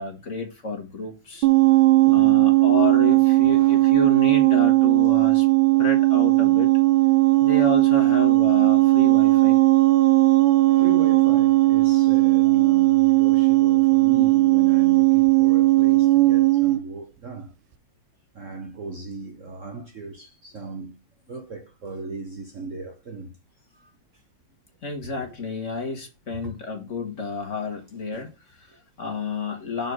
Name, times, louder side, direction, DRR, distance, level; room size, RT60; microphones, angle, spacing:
voice 1, 0.0-1.5 2.1-5.5 5.8-6.7 7.4-9.6 24.8-29.9, left 3 dB, 40° left, 1.6 m, -30 dB
sound 1, 1.4-16.8, right 20 dB, 80° right, 1.3 m, -17 dB
voice 2, 2.0-2.7 3.4-3.9 5.7-5.9 8.0-8.2 10.5-17.5 18.3-21.0 21.3-23.3 23.7-23.9 26.4-26.5, right 3 dB, 50° right, 1.0 m, -37 dB
6.6 x 4.3 x 4.8 m
omnidirectional pair, 2.2 m